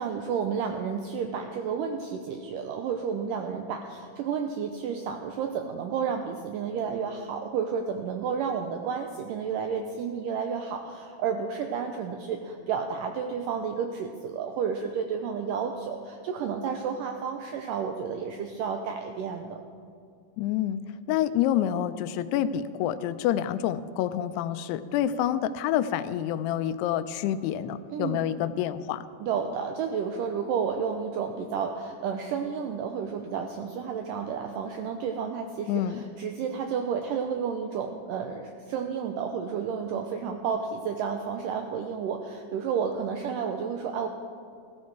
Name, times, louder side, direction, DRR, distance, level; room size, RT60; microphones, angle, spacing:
voice 1, 0.0-19.6 27.9-28.2 29.2-44.1, right 6 dB, 85° right, 5 dB, 1.9 m, -31 dB
voice 2, 20.4-20.8 21.1-29.0 35.7-36.0, left 11 dB, 90° left, 13 dB, 2.7 m, -28 dB
15.5 x 14.0 x 4.7 m, 2.3 s
omnidirectional pair, 4.6 m